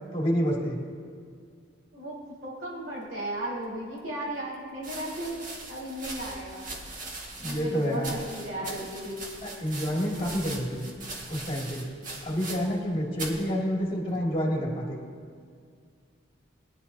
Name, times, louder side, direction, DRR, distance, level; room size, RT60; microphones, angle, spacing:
voice 1, 0.1-0.8 7.4-8.1 8.7-8.8 9.4-10.9 11.3-11.8 12.2-15.0, equal, 25° left, -3 dB, 2.5 m, -28 dB
voice 2, 2.4-5.3 5.7-6.7 7.4-9.2, right 1 dB, 65° right, -6 dB, 3.9 m, -35 dB
sound 1, 3.7-3.8 4.8-12.9 13.1-13.5 14.2-14.6, right 2 dB, 40° right, 1.8 m, -40 dB
21.5 x 11.0 x 2.8 m, 2.2 s
head